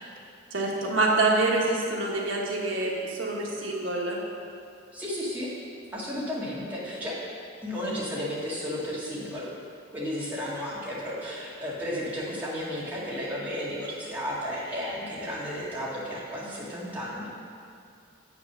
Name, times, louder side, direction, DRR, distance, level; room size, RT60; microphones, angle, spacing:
voice 1, 0.5-4.2, right 2 dB, 65° right, -2 dB, 1.4 m, -26 dB
voice 2, 4.9-5.5 5.9-7.2 7.6-9.5 9.9-17.3, equal, 10° right, -8 dB, 1.9 m, -33 dB
7.7 x 6.0 x 6.1 m, 2.3 s
head